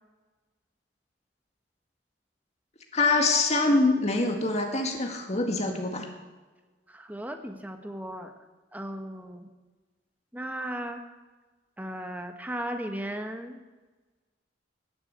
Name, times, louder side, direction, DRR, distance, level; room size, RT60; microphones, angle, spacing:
voice 1, 2.9-6.1, left 3 dB, 35° left, 3 dB, 1.9 m, -24 dB
voice 2, 6.9-8.3 8.7-9.5 10.3-11.0 11.8-13.6, right 1 dB, 10° right, 5 dB, 1.3 m, -36 dB
19.5 x 7.0 x 8.2 m, 1.3 s
head